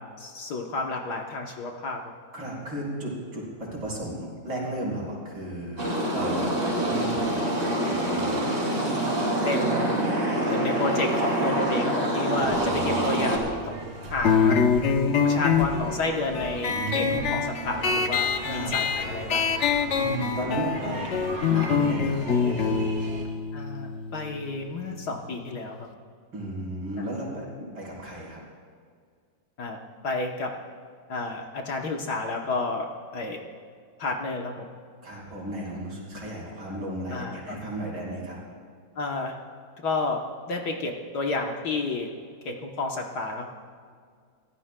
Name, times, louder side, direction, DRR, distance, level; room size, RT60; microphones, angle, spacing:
voice 1, 0.2-2.0 8.7-9.0 9.4-10.1 10.5-13.7 14.1-14.6 15.2-17.0 17.3-19.6 23.5-25.9 27.0-27.1 29.6-30.5 31.1-32.9 33.1-33.4 34.0-34.7 36.7-36.8 37.1-37.6 39.0-39.4 39.8-40.2 40.5-42.1 42.4-43.5, left 2 dB, 60° left, 2 dB, 1.4 m, -31 dB
voice 2, 2.3-8.5 12.6-13.3 16.7-17.3 18.4-18.7 20.0-23.0 26.3-27.5 27.7-28.4 35.0-38.4, right 1 dB, 70° right, -4 dB, 4.6 m, -34 dB
sound 1, 5.8-13.4, right 1 dB, 30° right, 2.9 m, -26 dB
sound 2, 12.3-23.2, right 2 dB, 90° right, 2.9 m, -39 dB
sound 3, 14.2-25.4, left 6 dB, 75° left, 0.6 m, -25 dB
23.0 x 16.0 x 2.2 m, 2.1 s
omnidirectional pair, 2.2 m